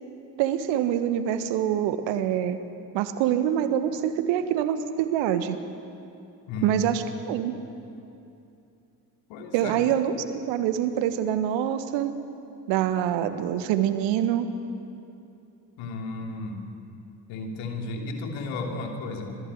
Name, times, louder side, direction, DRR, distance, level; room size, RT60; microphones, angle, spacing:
voice 1, 0.4-2.6 2.9-5.6 6.6-7.5 9.5-12.1 12.7-14.5, right 10 dB, 65° right, 11 dB, 1.5 m, -25 dB
voice 2, 6.5-6.8 9.3-9.7 15.8-16.6 17.3-19.3, left 2 dB, 65° left, 2 dB, 3.0 m, -33 dB
27.0 x 19.5 x 8.1 m, 2.7 s
figure-of-eight pair, 40°, 49 cm